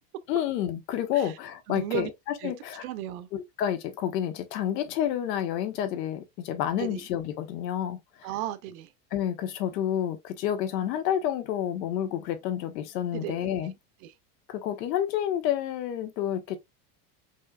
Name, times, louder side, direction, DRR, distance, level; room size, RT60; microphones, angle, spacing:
voice 1, 0.3-2.8 3.3-8.3 9.1-13.7 14.5-16.6, left 10 dB, 90° left, 1.2 m, -29 dB
voice 2, 1.7-2.1 2.4-2.5 2.8-3.3 6.8-7.0 8.2-8.9 13.1-13.5 14.0-14.1, right 13 dB, 65° right, 0.8 m, -34 dB
5.5 x 3.0 x 2.3 m
supercardioid pair, 165°, 48 cm